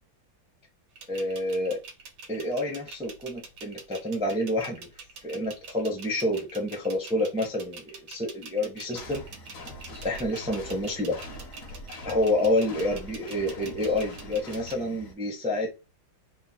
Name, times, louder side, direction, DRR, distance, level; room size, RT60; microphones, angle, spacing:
sound 1, 1.0-14.8, right 4 dB, 65° right, 1.4 m, -45 dB
voice 1, 1.1-1.8 2.3-4.9 5.2-9.2 10.0-11.2 12.0-15.7, left 1 dB, 5° right, 0.6 m, -28 dB
sound 2, 8.9-15.1, left 1 dB, 55° left, 1.1 m, -43 dB
3.7 x 2.1 x 4.1 m
omnidirectional pair, 2.1 m